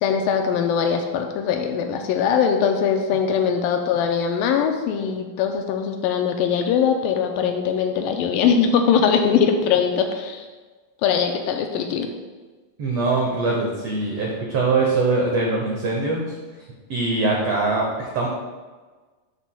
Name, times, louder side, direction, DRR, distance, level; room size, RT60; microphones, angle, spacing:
voice 1, 0.0-10.5 11.0-12.1, left 7 dB, 80° left, 4 dB, 2.1 m, -21 dB
voice 2, 12.8-16.3 16.9-18.3, right 3 dB, 90° right, -2 dB, 1.4 m, -22 dB
11.5 x 5.6 x 2.2 m, 1.3 s
omnidirectional pair, 4.2 m